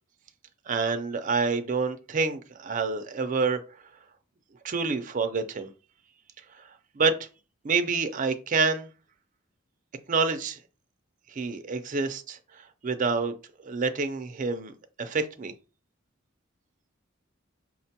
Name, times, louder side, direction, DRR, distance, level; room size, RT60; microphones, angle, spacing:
voice 1, 0.7-3.6 4.6-5.7 7.0-7.1 7.6-8.9 10.1-10.6 11.4-12.4 12.8-13.3 13.6-14.7 15.0-15.5, right 4 dB, 40° right, 0.4 m, -27 dB
5.8 x 2.2 x 2.8 m
head